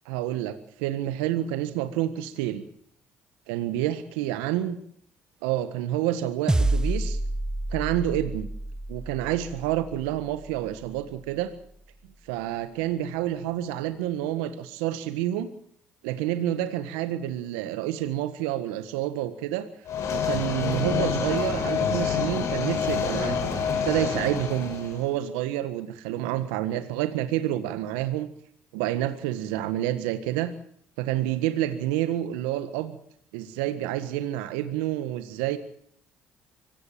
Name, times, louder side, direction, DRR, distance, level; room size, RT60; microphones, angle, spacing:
voice 1, 0.1-2.6 3.5-4.8 5.4-7.2 7.7-8.5 8.9-11.5 12.3-15.5 16.0-19.7 20.1-23.5 23.9-28.3 28.7-30.5 31.0-33.0 33.3-35.6, right 13 dB, 85° right, 11 dB, 1.6 m, -28 dB
sound 1, 6.5-11.1, right 1 dB, 15° right, 1.4 m, -29 dB
sound 2, 19.9-25.0, left 6 dB, 65° left, 6.3 m, -27 dB
24.5 x 17.5 x 7.6 m, 0.64 s
hypercardioid pair, 60°, 6 cm